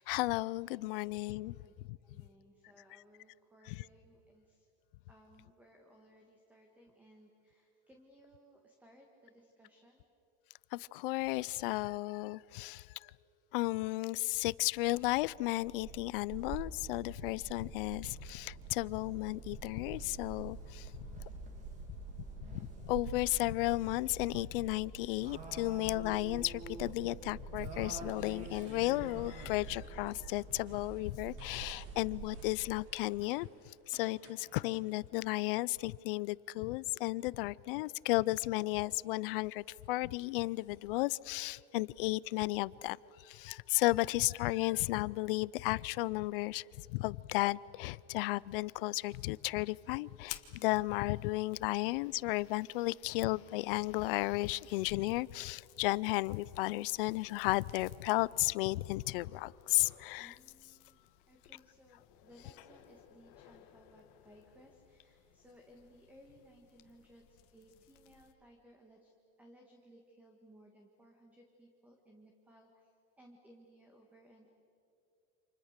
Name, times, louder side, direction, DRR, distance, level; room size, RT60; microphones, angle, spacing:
voice 1, 0.0-1.6 10.7-12.9 13.5-20.9 22.5-33.5 33.9-43.0 43.2-46.6 46.9-60.3, left 20 dB, 60° left, 0.5 m, -34 dB
voice 2, 2.0-4.7 5.1-10.1 51.8-51.9 60.1-69.1 69.4-74.5, equal, 5° right, 1.7 m, -61 dB
sound 1, 14.8-32.7, right 3 dB, 25° right, 2.5 m, -46 dB
sound 2, 28.0-35.0, right 4 dB, 45° right, 4.1 m, -62 dB
sound 3, 48.5-68.3, left 14 dB, 45° left, 1.6 m, -57 dB
29.5 x 27.5 x 6.6 m
supercardioid pair, 180°, 31 cm